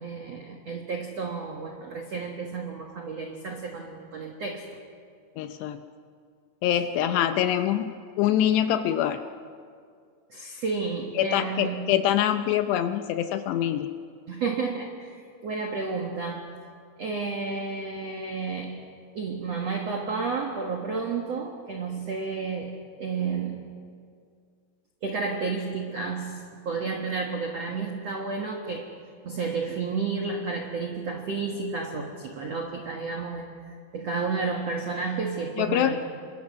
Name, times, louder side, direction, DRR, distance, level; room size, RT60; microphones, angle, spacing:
voice 1, 0.0-4.7 10.3-11.9 14.3-16.5 17.0-18.8 19.1-23.7 25.0-28.9 29.2-36.0, right 4 dB, 70° right, 2 dB, 1.5 m, -31 dB
voice 2, 5.4-5.9 6.6-9.2 11.2-13.9 35.6-36.0, left 11 dB, 80° left, 8 dB, 2.6 m, -24 dB
28.0 x 24.0 x 6.3 m, 2.2 s
omnidirectional pair, 5.4 m